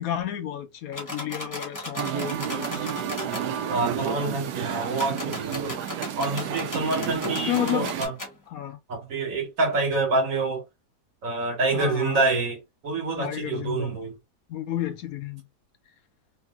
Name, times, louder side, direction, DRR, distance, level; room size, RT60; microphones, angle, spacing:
voice 1, 0.0-2.9 7.2-7.9 8.5-8.8 11.7-12.2 13.2-14.0 14.5-15.4, left 11 dB, 70° left, 1.0 m, -31 dB
sound 1, 0.9-3.5 4.9-8.3, left 1 dB, 15° left, 0.9 m, -36 dB
Musical instrument, 1.9-8.1, right 9 dB, 90° right, 1.2 m, -31 dB
voice 2, 3.7-5.7 6.2-8.1 8.9-10.6 11.2-14.2, right 3 dB, 55° right, 1.6 m, -27 dB
3.0 x 2.8 x 2.3 m
omnidirectional pair, 1.7 m